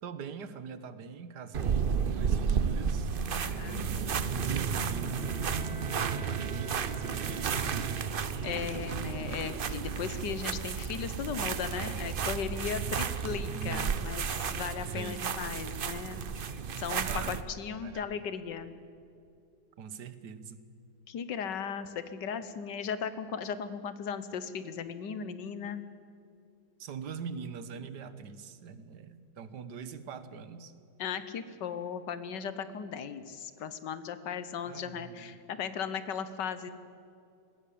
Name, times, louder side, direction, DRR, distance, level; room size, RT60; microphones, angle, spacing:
voice 1, 0.0-3.2 3.4-5.2 5.7-8.0 13.5-14.0 14.9-15.2 16.9-17.4 17.8-18.2 19.8-20.6 26.8-30.7 34.7-35.3, right 6 dB, 75° right, 13 dB, 1.7 m, -43 dB
sound 1, 1.5-17.4, right 6 dB, 50° right, 0.7 m, -32 dB
voice 2, 3.4-4.2 8.4-18.8 21.1-25.8 31.0-36.7, left 7 dB, 90° left, 12 dB, 1.8 m, -37 dB
sound 2, 4.9-8.7, right 3 dB, 20° right, 1.5 m, -47 dB
20.0 x 16.5 x 8.6 m, 2.6 s
omnidirectional pair, 1.8 m